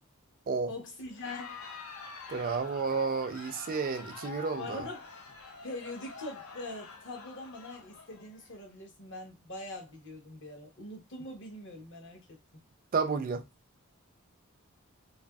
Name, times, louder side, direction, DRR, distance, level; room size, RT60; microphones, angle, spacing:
voice 1, 0.7-1.6 4.6-5.1 5.6-12.3, left 2 dB, 60° left, 0.9 m, -43 dB
Crowd, 1.1-8.6, left 5 dB, 90° left, 0.6 m, -47 dB
voice 2, 2.3-4.8 12.9-13.4, right 5 dB, 40° right, 0.3 m, -31 dB
2.6 x 2.5 x 2.2 m
head